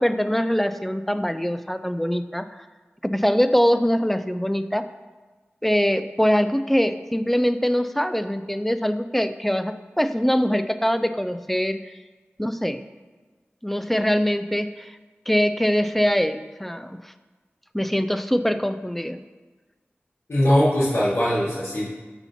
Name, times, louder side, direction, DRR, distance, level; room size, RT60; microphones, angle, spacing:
voice 1, 0.0-2.5 3.0-4.9 5.6-11.9 12.4-12.8 13.6-14.9 15.3-17.1 17.7-19.2, equal, 5° left, 11 dB, 0.3 m, -23 dB
voice 2, 20.3-21.9, equal, 75° left, -9 dB, 1.6 m, -20 dB
7.0 x 2.8 x 5.7 m, 1.3 s
wide cardioid pair, 60°, 4 cm